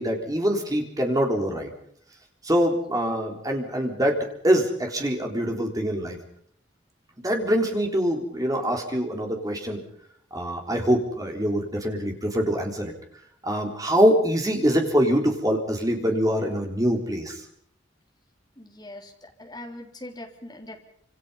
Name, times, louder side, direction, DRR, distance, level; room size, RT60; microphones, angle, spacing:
voice 1, 0.0-1.7 2.4-6.2 7.2-9.8 10.3-12.9 13.4-17.4, equal, 20° right, 2 dB, 3.8 m, -24 dB
voice 2, 18.6-20.8, left 1 dB, 20° left, 2 dB, 3.5 m, -41 dB
27.0 x 26.5 x 5.6 m, 0.67 s
head